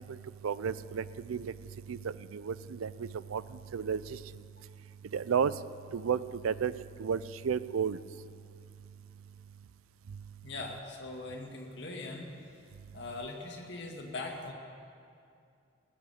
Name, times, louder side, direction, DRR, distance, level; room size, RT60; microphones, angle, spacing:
voice 1, 0.4-1.4 1.9-2.0 2.3-2.9 3.3-3.4 3.7-4.0 5.1-5.5 5.9-6.2 6.4-6.7 7.0-8.0, right 7 dB, 85° right, 16 dB, 0.4 m, -31 dB
voice 2, 10.4-12.3 12.9-14.5, left 2 dB, 55° left, 0 dB, 2.0 m, -41 dB
19.5 x 8.6 x 7.1 m, 2.4 s
head